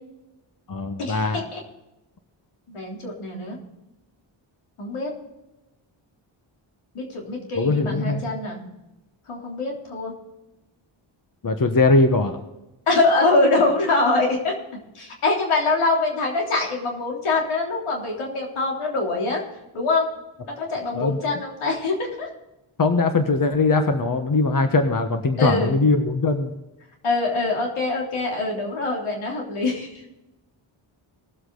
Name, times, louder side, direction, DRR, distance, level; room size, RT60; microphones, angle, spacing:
voice 1, 0.7-1.4 7.6-8.2 11.4-12.4 20.9-21.2 22.8-26.5, left 3 dB, 40° left, 7 dB, 1.4 m, -20 dB
voice 2, 2.7-3.6 4.8-5.1 6.9-8.6 9.3-10.1 12.9-14.5 15.0-19.4 19.7-20.1 20.4-22.3 25.4-25.8 27.0-30.0, left 3 dB, 85° left, -1 dB, 3.5 m, -24 dB
19.5 x 7.9 x 4.0 m, 0.96 s
cardioid pair, 60°, 49 cm